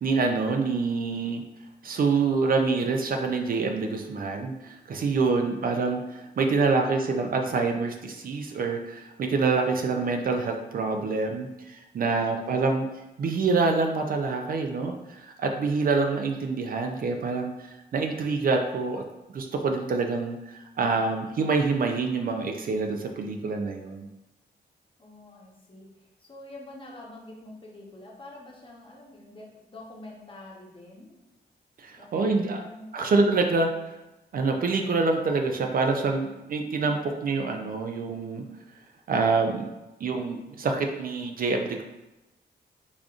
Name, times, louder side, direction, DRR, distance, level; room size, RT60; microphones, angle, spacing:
voice 1, 0.0-1.4 1.8-12.9 13.2-19.0 19.3-24.1 31.8-32.6 32.9-33.7 34.3-38.4 39.1-39.6 40.0-41.8, right 4 dB, 55° right, 4 dB, 0.4 m, -26 dB
voice 2, 25.0-31.2 32.0-33.8, left 2 dB, 30° left, -3 dB, 0.8 m, -47 dB
5.0 x 2.5 x 2.4 m, 1.0 s
wide cardioid pair, 125°, 18 cm